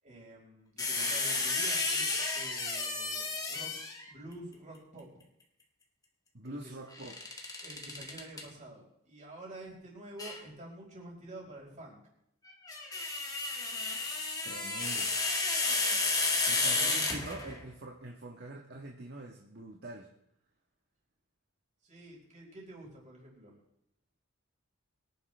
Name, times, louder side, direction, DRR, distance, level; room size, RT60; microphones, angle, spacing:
voice 1, 0.0-3.7 4.1-5.1 6.4-6.8 7.6-12.0 16.5-16.9 21.8-23.6, right 1 dB, 35° right, -3 dB, 5.2 m, -48 dB
sound 1, 0.8-4.1 7.0-8.4 10.2-10.4 12.5-17.6, left 3 dB, 15° left, 1.6 m, -32 dB
voice 2, 6.3-7.1 14.4-15.1 16.5-20.1, right 2 dB, 50° right, 0 dB, 1.6 m, -44 dB
23.5 x 10.5 x 3.4 m, 0.77 s
head